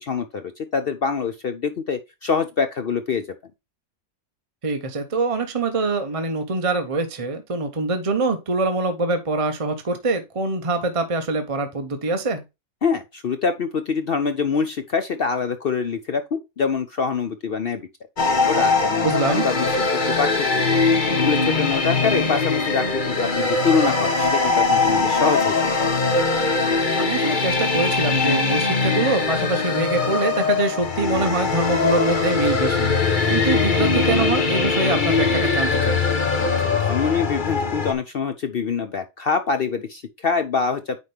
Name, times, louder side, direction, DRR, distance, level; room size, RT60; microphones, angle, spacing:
voice 1, 0.0-3.2 12.8-17.9 18.3-20.8 21.2-25.6 36.4-36.5 36.8-41.0, left 5 dB, 60° left, 0.6 m, -25 dB
voice 2, 4.6-12.4 19.0-19.5 27.0-32.9 33.3-36.0, right 3 dB, 30° right, 0.7 m, -24 dB
sound 1, 18.2-37.9, left 4 dB, 35° left, 1.2 m, -21 dB
9.4 x 4.1 x 3.3 m
omnidirectional pair, 1.7 m